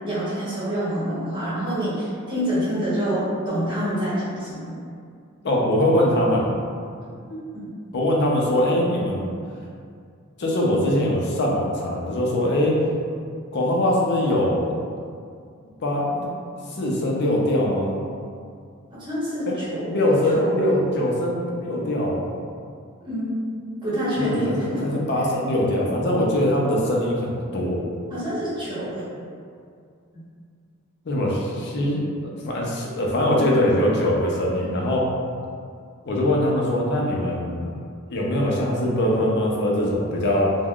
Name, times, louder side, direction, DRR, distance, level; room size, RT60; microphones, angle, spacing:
voice 1, 0.0-4.8 7.3-7.7 19.0-20.0 20.3-20.6 23.0-24.8 28.1-29.0 30.1-30.2 34.6-34.8, equal, 25° right, -11 dB, 1.0 m, -27 dB
voice 2, 5.4-6.5 7.9-9.3 10.4-12.8 13.5-14.7 15.8-16.3 16.7-17.9 19.5-19.6 19.9-22.3 24.2-27.8 31.1-35.0 36.0-37.7 38.1-40.5, left 1 dB, 50° left, -3 dB, 0.5 m, -22 dB
3.3 x 2.1 x 2.3 m, 2.3 s
head